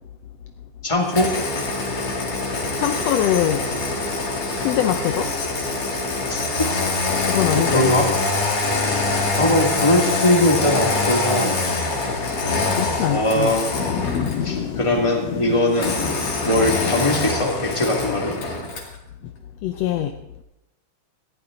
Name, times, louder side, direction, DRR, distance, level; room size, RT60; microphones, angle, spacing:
voice 1, 0.8-1.3 6.3-6.7 7.5-8.1 9.4-11.7 13.1-14.0 14.4-15.9 16.4-18.3, left 1 dB, 10° left, 1 dB, 2.0 m, -21 dB
Engine starting, 1.1-14.5 15.7-19.0, left 3 dB, 50° left, 3.1 m, -24 dB
voice 2, 2.8-3.7 4.6-5.3 7.2-7.9 9.1-9.4 12.7-13.5 19.2-19.3 19.6-20.2, left 11 dB, 80° left, 7 dB, 1.4 m, -23 dB
Thunder / Rain, 11.0-17.3, left 7 dB, 65° left, 2.1 m, -31 dB
20.0 x 14.5 x 3.9 m, 0.90 s
omnidirectional pair, 3.7 m